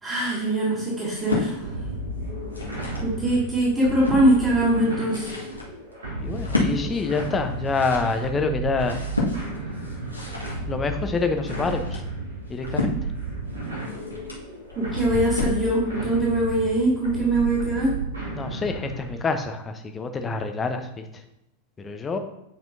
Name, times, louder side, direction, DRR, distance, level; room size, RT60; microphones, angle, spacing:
voice 1, 0.0-1.7 3.0-5.3 14.8-17.9, right 1 dB, 25° right, -8 dB, 2.6 m, -22 dB
sound 1, 1.0-1.5 2.3-3.1 3.6-4.2 4.8-15.7, left 2 dB, 85° left, 1.5 m, -31 dB
sound 2, 1.6-19.2, right 2 dB, 70° right, 2.7 m, -33 dB
voice 2, 6.2-9.0 10.7-12.0 12.5-12.9 18.4-21.0 21.8-22.2, left 4 dB, 20° left, 6 dB, 0.8 m, -27 dB
8.9 x 5.3 x 2.7 m, 0.87 s
figure-of-eight pair, 90°, 0 cm